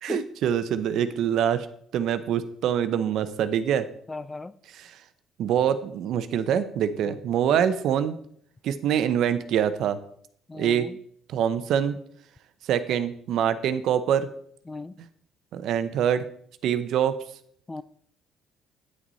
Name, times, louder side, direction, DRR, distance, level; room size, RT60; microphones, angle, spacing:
voice 1, 0.0-1.7 1.9-3.9 4.9-5.0 5.4-8.2 8.6-10.0 10.6-10.9 11.3-11.9 12.7-14.3 15.5-16.2 16.6-17.2, right 9 dB, 70° right, 0.7 m, -24 dB
voice 2, 4.1-4.5 7.1-7.2 7.5-7.7 10.5-11.0 14.7-15.0 17.7-17.8, left 3 dB, 20° left, 0.4 m, -37 dB
9.5 x 6.2 x 4.1 m
cardioid pair, 90°, 0 cm